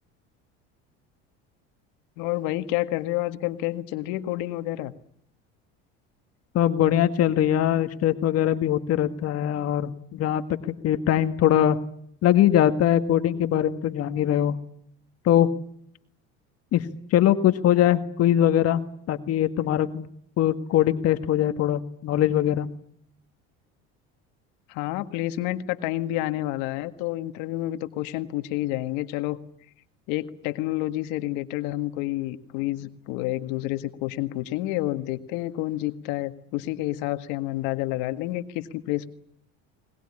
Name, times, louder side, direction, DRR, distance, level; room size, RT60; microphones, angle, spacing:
voice 1, 2.2-4.9 24.7-29.4 30.1-39.1, left 16 dB, 75° left, 10 dB, 1.8 m, -29 dB
voice 2, 6.5-11.8 12.2-14.6 15.3-15.5 16.7-16.9 17.1-18.8 19.1-20.1 20.4-22.7, left 11 dB, 50° left, 9 dB, 1.8 m, -22 dB
21.5 x 21.0 x 9.9 m, 0.67 s
supercardioid pair, 105°, 30 cm